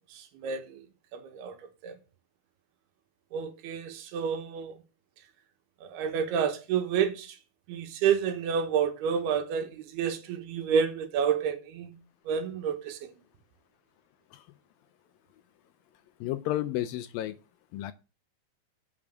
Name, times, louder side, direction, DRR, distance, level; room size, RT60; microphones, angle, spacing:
voice 1, 0.1-0.9 1.1-1.5 1.8-2.0 3.3-4.8 5.8-7.4 7.7-12.0 12.3-13.1, right 7 dB, 85° right, 3.3 m, -29 dB
voice 2, 16.2-17.4 17.7-17.9, left 13 dB, 80° left, 2.1 m, -32 dB
8.5 x 5.9 x 7.6 m
omnidirectional pair, 4.5 m